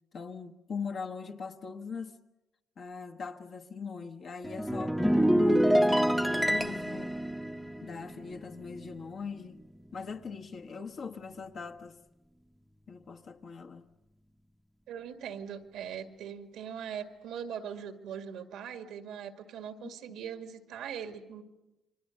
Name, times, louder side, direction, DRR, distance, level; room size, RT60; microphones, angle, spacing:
voice 1, 0.1-2.2 2.8-7.2 7.8-9.6 9.9-12.0 12.9-13.9 19.8-19.9, left 5 dB, 55° left, 1.3 m, -41 dB
sound 1, 4.4-9.1 9.3-9.7, equal, ahead, 0.8 m, -27 dB
voice 2, 14.9-21.4, right 8 dB, 85° right, 2.1 m, -41 dB
29.5 x 24.0 x 6.6 m
cardioid pair, 90°, 0 cm